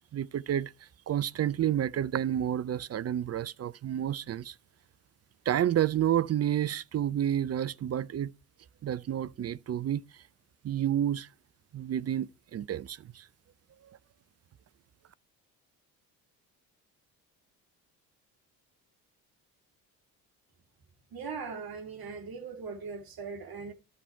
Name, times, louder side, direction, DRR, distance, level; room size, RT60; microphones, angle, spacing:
voice 1, 0.1-0.7 1.1-4.5 5.5-8.3 8.8-10.0 10.6-11.3 11.7-13.3, right 10 dB, 35° right, 0.6 m, -30 dB
voice 2, 21.1-23.7, right 5 dB, 50° right, 2.5 m, -40 dB
12.5 x 6.5 x 4.5 m
hypercardioid pair, 50°, 47 cm